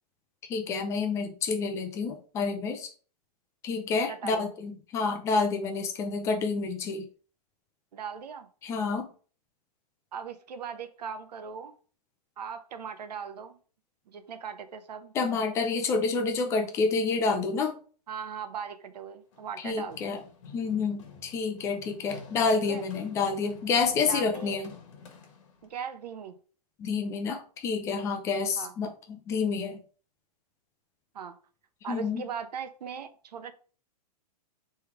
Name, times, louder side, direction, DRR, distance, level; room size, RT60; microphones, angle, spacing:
voice 1, 0.5-2.9 3.6-7.1 8.6-9.1 15.1-17.8 19.6-20.2 20.5-24.7 26.8-29.8 31.9-32.2, left 4 dB, 15° left, 0.4 m, -28 dB
voice 2, 4.1-4.5 7.9-8.5 10.1-11.8 12.4-13.6 14.1-15.1 18.1-20.1 22.7-22.8 24.1-24.6 25.6-26.4 28.6-28.7 31.1-31.3 31.8-33.5, right 7 dB, 85° right, 0.8 m, -39 dB
Run, 19.3-25.7, left 5 dB, 50° left, 1.3 m, -49 dB
3.4 x 3.1 x 4.7 m
hypercardioid pair, 155°, 21 cm